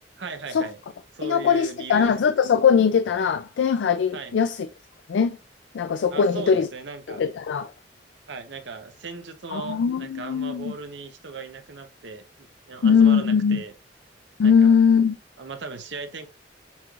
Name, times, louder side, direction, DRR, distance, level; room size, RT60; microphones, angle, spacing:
voice 1, 0.2-0.8 1.1-2.1 4.1-4.4 6.1-7.2 8.3-13.7 14.4-14.7 15.4-16.3, right 4 dB, 80° right, 0.8 m, -37 dB
voice 2, 1.2-4.7 5.1-5.4 5.7-6.7 7.1-7.7 9.5-10.8 12.8-13.6 14.4-15.1, left 6 dB, 85° left, 0.4 m, -20 dB
7.0 x 3.1 x 2.4 m
head